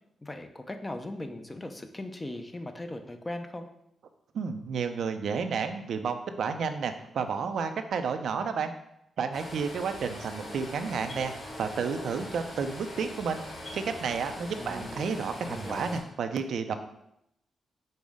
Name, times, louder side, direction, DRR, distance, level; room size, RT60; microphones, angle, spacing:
voice 1, 0.2-3.7 14.6-15.0 15.5-16.0, left 1 dB, 20° left, 7 dB, 0.5 m, -39 dB
voice 2, 4.3-8.7 9.2-11.3 11.6-13.4 13.7-16.7, right 5 dB, 75° right, 7 dB, 0.4 m, -31 dB
sound 1, 9.3-16.0, left 1 dB, 55° left, 1.8 m, -42 dB
5.3 x 2.0 x 4.8 m, 0.79 s
cardioid pair, 70°, 0 cm